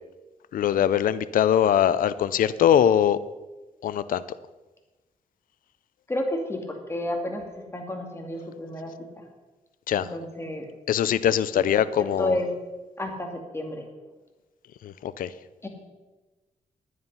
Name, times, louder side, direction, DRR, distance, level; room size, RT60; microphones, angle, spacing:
voice 1, 0.5-3.2 3.8-4.2 9.9-10.1 10.9-12.3 14.8-15.3, left 10 dB, 80° left, 15 dB, 0.5 m, -22 dB
voice 2, 6.1-9.2 9.9-10.7 11.5-11.6 12.0-12.5 13.0-13.9 15.6-15.7, left 1 dB, 20° left, 2 dB, 2.4 m, -31 dB
11.0 x 9.6 x 5.5 m, 1.2 s
cardioid pair, 90°, 14 cm